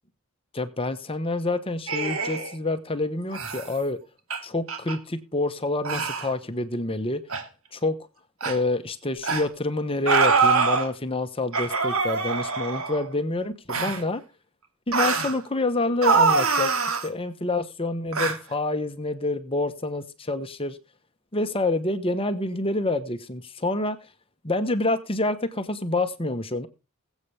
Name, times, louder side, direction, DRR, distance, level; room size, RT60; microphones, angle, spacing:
voice 1, 0.5-4.0 4.4-7.2 7.7-8.0 8.4-14.2 14.9-20.8 21.3-24.0 24.4-26.7, left 2 dB, 25° left, 1.0 m, -27 dB
sound 1, 1.9-2.5 3.3-3.7 4.3-4.4 4.7-5.0 5.8-6.3 7.3-7.4 8.4-8.6 9.2-9.4 10.1-10.9 11.5-13.0 13.7-14.0 14.9-15.3 16.0-17.1 18.1-18.4, right 4 dB, 65° right, 2.6 m, -24 dB
21.0 x 8.3 x 3.4 m
head